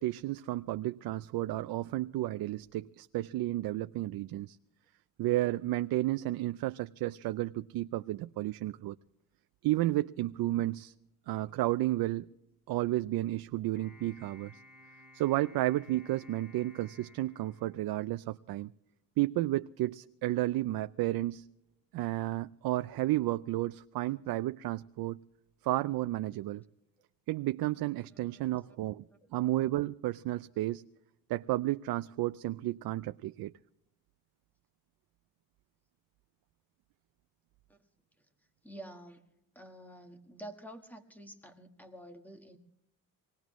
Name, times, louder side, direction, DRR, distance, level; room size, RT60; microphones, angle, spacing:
voice 1, 0.0-4.6 5.2-9.0 9.6-10.9 11.3-12.3 12.7-14.5 15.1-18.7 19.2-21.5 21.9-25.2 25.6-26.6 27.3-29.0 29.3-30.8 31.3-33.5, right 16 dB, 75° right, 0.5 m, -32 dB
sound 1, 13.8-18.3, left 1 dB, 60° left, 6.8 m, -57 dB
voice 2, 38.6-39.2 39.5-42.6, right 1 dB, 5° left, 1.5 m, -49 dB
24.5 x 18.5 x 3.1 m
cardioid pair, 170°, 36 cm